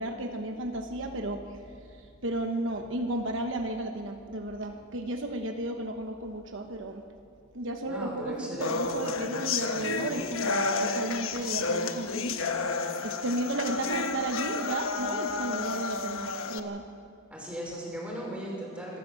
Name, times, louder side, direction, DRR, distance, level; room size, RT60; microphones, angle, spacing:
voice 1, 0.0-7.0 7.5-12.3 13.0-16.8, right 1 dB, 65° right, 5 dB, 1.1 m, -33 dB
voice 2, 7.8-9.0 17.3-19.0, equal, 5° right, -3 dB, 5.3 m, -37 dB
sound 1, 8.6-16.6, left 4 dB, 80° left, 1.2 m, -31 dB
25.5 x 13.5 x 7.7 m, 2.5 s
head